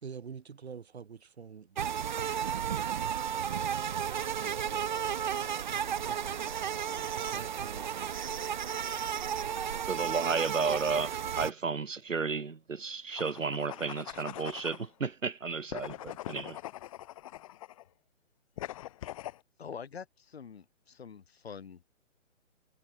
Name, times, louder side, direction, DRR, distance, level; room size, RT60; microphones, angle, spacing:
voice 1, 0.0-3.7 4.3-5.8 6.0-6.4 7.3-8.1, right 6 dB, 55° right, 2.8 m, -48 dB
sound 1, 1.8-11.5, right 8 dB, 40° right, 0.7 m, -33 dB
voice 2, 9.9-16.6, right 4 dB, 85° right, 1.0 m, -33 dB
sound 2, 13.1-14.9 15.7-17.8 18.6-19.4, left 14 dB, 25° left, 1.6 m, -42 dB
voice 3, 19.6-21.8, left 7 dB, 55° left, 5.7 m, -45 dB
figure-of-eight pair, 140°, 38 cm